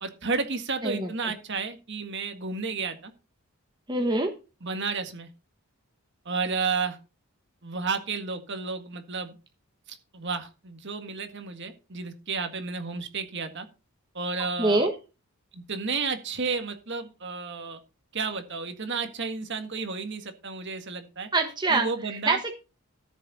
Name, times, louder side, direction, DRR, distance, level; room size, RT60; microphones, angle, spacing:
voice 1, 0.0-3.1 4.6-5.3 6.3-7.0 7.6-9.4 9.9-13.7 14.1-14.9 15.5-17.8 18.1-21.3 21.7-22.4, right 4 dB, 50° right, 7 dB, 1.8 m, -32 dB
voice 2, 3.9-4.3 14.6-14.9 21.3-21.9 22.3-22.5, right 2 dB, 20° right, 4 dB, 1.2 m, -24 dB
14.0 x 7.3 x 4.2 m, 0.31 s
head